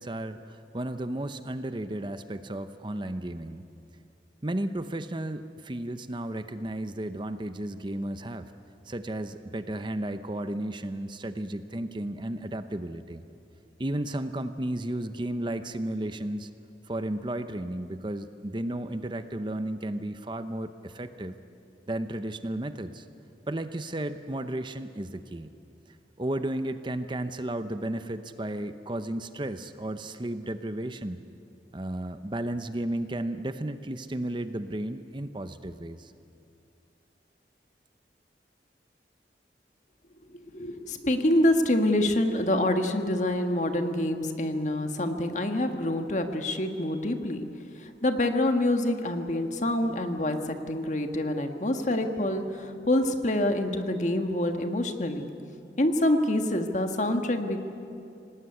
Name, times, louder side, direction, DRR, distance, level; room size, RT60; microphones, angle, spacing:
voice 1, 0.0-3.6 4.4-8.5 8.9-13.3 13.8-16.5 16.8-21.3 21.9-23.1 23.5-25.5 26.2-31.2 31.7-36.1, right 1 dB, 25° right, 10 dB, 0.7 m, -33 dB
voice 2, 40.3-47.5 47.8-55.3 55.8-57.6, left 1 dB, 40° left, 6 dB, 1.6 m, -26 dB
25.5 x 19.0 x 9.8 m, 2.6 s
head